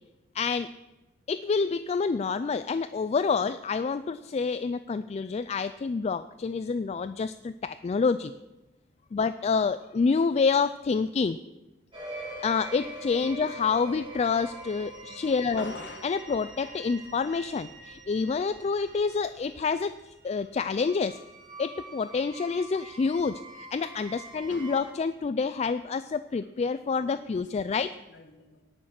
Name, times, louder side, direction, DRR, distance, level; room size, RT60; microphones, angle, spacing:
voice 1, 0.3-0.7 1.3-8.3 9.1-11.4 12.4-15.7 16.0-21.2 21.6-28.0, left 5 dB, 35° left, 12 dB, 0.3 m, -28 dB
sound 1, 11.9-24.8, right 2 dB, 25° right, 3.9 m, -44 dB
voice 2, 15.6-16.1 24.5-24.9 27.0-27.1 28.1-28.6, left 2 dB, 65° left, 4 dB, 1.8 m, -43 dB
18.0 x 6.4 x 5.9 m, 1.1 s
head